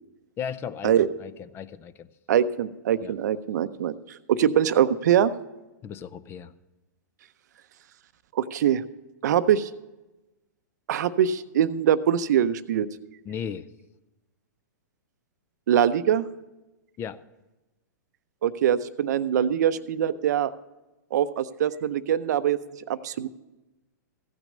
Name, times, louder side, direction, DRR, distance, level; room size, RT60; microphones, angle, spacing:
voice 1, 0.4-2.1 3.0-3.1 5.8-6.5 13.3-13.7 17.0-17.2, left 8 dB, 25° left, 15 dB, 0.5 m, -36 dB
voice 2, 2.3-5.3 8.3-8.8 9.2-9.7 10.9-12.9 15.7-16.3 18.4-20.5 21.1-22.6 22.9-23.3, right 9 dB, 70° right, 14 dB, 0.6 m, -23 dB
15.5 x 6.2 x 6.4 m, 1.0 s
hypercardioid pair, 130°, 10 cm